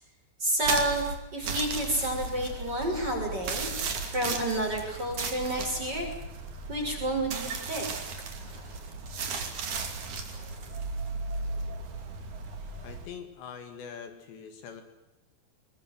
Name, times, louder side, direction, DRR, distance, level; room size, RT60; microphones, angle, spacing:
voice 1, 0.4-1.0 1.3-3.7 4.0-6.1 6.7-7.9 8.4-8.8 10.3-10.6, right 1 dB, 20° right, 1 dB, 6.9 m, -30 dB
sound 1, 0.6-13.1, right 4 dB, 45° right, 3.7 m, -35 dB
voice 2, 12.8-14.8, left 7 dB, 70° left, 7 dB, 4.1 m, -43 dB
24.0 x 21.0 x 7.8 m, 0.98 s
omnidirectional pair, 5.5 m